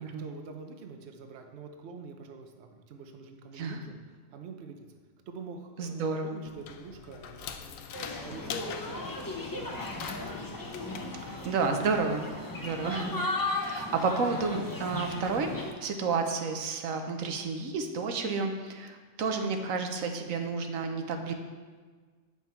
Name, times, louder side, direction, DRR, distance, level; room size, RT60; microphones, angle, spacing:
voice 1, 0.0-4.0 4.3-4.9 5.3-9.2 9.5-10.8, right 4 dB, 60° right, 4 dB, 1.0 m, -46 dB
voice 2, 5.8-6.4 11.3-12.3 12.6-15.5 15.8-21.3, right 4 dB, 85° right, 5 dB, 1.2 m, -31 dB
sound 1, 6.4-12.1, left 7 dB, 85° left, 1.0 m, -44 dB
sound 2, 7.9-15.7, left 2 dB, 20° left, 0.6 m, -36 dB
8.9 x 5.8 x 4.4 m, 1.5 s
omnidirectional pair, 1.4 m